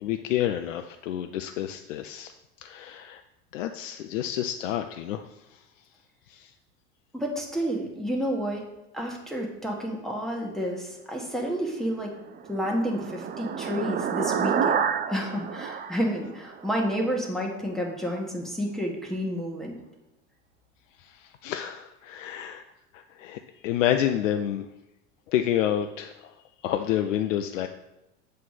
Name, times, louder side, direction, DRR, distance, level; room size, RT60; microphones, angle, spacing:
voice 1, 0.0-2.3 2.6-3.2 3.5-5.2 6.3-6.5 21.0-22.6 22.9-24.7 25.3-26.3 26.6-27.7, left 11 dB, 80° left, 7 dB, 0.5 m, -29 dB
voice 2, 7.1-8.6 8.9-12.1 12.5-14.8 15.1-19.8, equal, ahead, -1 dB, 1.3 m, -30 dB
sound 1, 12.1-16.9, right 7 dB, 25° right, 0.4 m, -29 dB
7.5 x 3.2 x 5.6 m, 0.95 s
hypercardioid pair, 90°, 37 cm